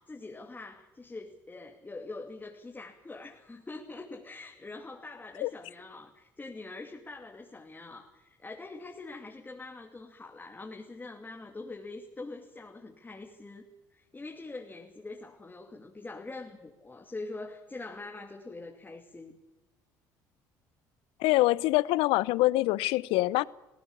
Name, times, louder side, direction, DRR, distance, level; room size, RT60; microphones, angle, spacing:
voice 1, 0.0-13.6 13.9-19.4, left 3 dB, 20° left, 2.7 m, -44 dB
voice 2, 21.2-23.4, left 18 dB, 75° left, 0.7 m, -25 dB
20.0 x 17.5 x 8.5 m
hypercardioid pair, 65°, 9 cm